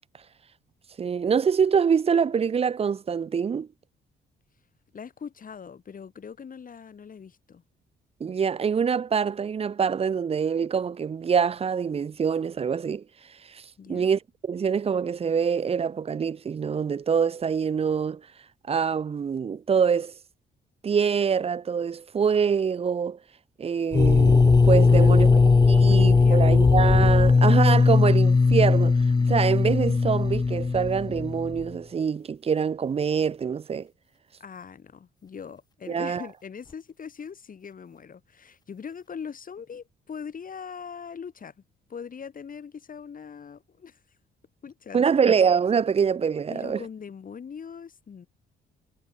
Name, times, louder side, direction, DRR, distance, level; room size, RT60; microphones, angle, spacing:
voice 1, 1.0-3.7 8.2-13.0 13.5-13.6 13.9-18.2 18.7-20.1 20.8-23.2 23.6-25.3 25.7-33.9 35.9-36.2 44.9-46.8, right 6 dB, 30° right, 0.5 m, -25 dB
voice 2, 4.9-7.6 13.8-14.1 24.9-26.6 34.4-41.5 41.9-44.0 44.6-45.0 46.5-48.3, left 6 dB, 45° left, 3.1 m, -41 dB
sound 1, 23.9-31.7, left 4 dB, 20° left, 0.7 m, -18 dB
cardioid pair, 90°, 20 cm